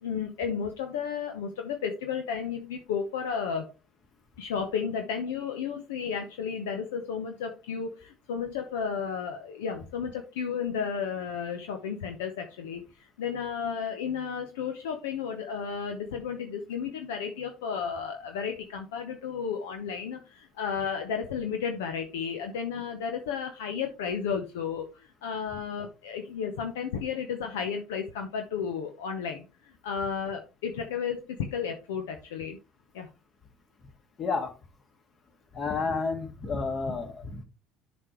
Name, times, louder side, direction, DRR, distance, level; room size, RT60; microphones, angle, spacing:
voice 1, 0.0-3.7 4.4-12.8 13.2-32.6 32.9-33.1, left 6 dB, 75° left, 5 dB, 0.9 m, -33 dB
voice 2, 34.2-34.5 35.5-37.4, left 4 dB, 40° left, 6 dB, 1.9 m, -30 dB
11.0 x 5.2 x 3.1 m, 0.29 s
hypercardioid pair, 65°, 0 cm